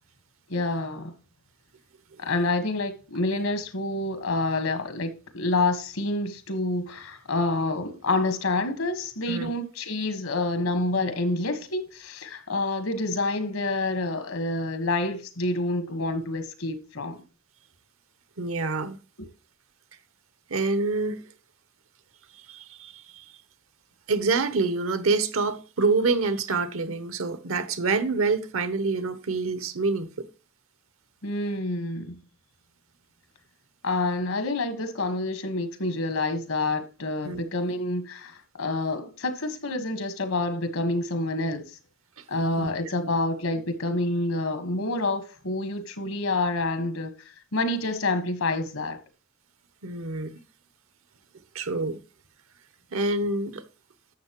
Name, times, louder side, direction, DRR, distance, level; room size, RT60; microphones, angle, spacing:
voice 1, 0.5-1.2 2.2-17.2 31.2-32.1 33.8-41.8 42.3-47.1 47.5-49.0, left 2 dB, 75° left, 1.5 m, -28 dB
voice 2, 18.4-19.0 20.5-21.2 22.5-22.9 24.1-30.3 37.2-37.4 42.6-42.7 49.8-50.3 51.5-52.0 52.9-53.6, right 3 dB, 75° right, 1.0 m, -26 dB
11.5 x 7.4 x 3.0 m
head